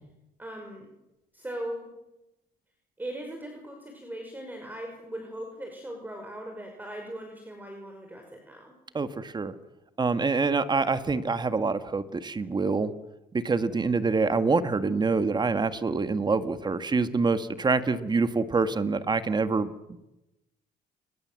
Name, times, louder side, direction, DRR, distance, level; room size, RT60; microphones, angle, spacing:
voice 1, 0.4-0.9 1.3-1.9 3.0-8.7 17.9-18.2, right 1 dB, 10° right, 3 dB, 5.7 m, -39 dB
voice 2, 8.9-9.5 10.0-12.9 13.4-19.7, right 4 dB, 25° right, 11 dB, 1.7 m, -26 dB
29.5 x 23.0 x 7.8 m, 0.96 s
cardioid pair, 110°, 17 cm